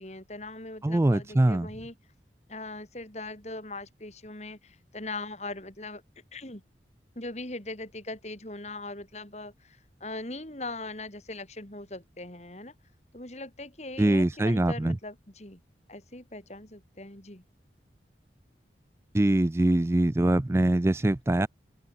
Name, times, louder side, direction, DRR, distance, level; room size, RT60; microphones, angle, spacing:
voice 1, 0.0-1.9 2.5-6.0 6.3-6.6 7.2-12.7 13.1-15.6 15.9-17.4, left 2 dB, 40° left, 4.2 m, -40 dB
voice 2, 0.8-1.7 14.0-15.0 19.1-21.5, right 1 dB, 15° right, 0.3 m, -23 dB
open air
head